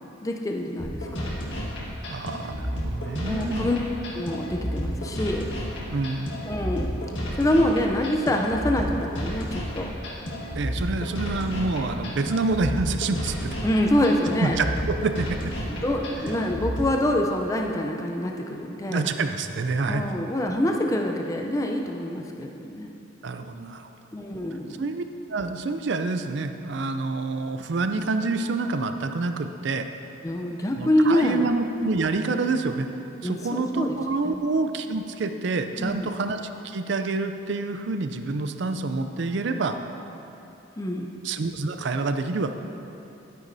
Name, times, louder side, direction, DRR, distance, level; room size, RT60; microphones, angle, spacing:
voice 1, 0.2-1.3 3.2-3.8 4.1-5.5 6.5-6.9 7.4-9.9 13.6-14.6 15.7-19.0 19.8-22.9 24.1-24.8 30.2-31.5 33.2-34.0 34.2-34.4 35.8-36.1 40.8-41.1, left 1 dB, 15° left, 2 dB, 0.4 m, -26 dB
sound 1, 0.8-16.8, equal, 65° left, 1.7 m, -31 dB
voice 2, 2.1-3.7 5.9-6.3 10.5-13.6 14.4-15.5 16.4-16.5 18.9-20.0 23.2-23.9 24.8-25.0 25.3-29.9 30.8-32.9 33.2-39.8 41.2-42.5, right 3 dB, 60° right, 8 dB, 0.4 m, -27 dB
12.0 x 9.3 x 2.7 m, 3.0 s
head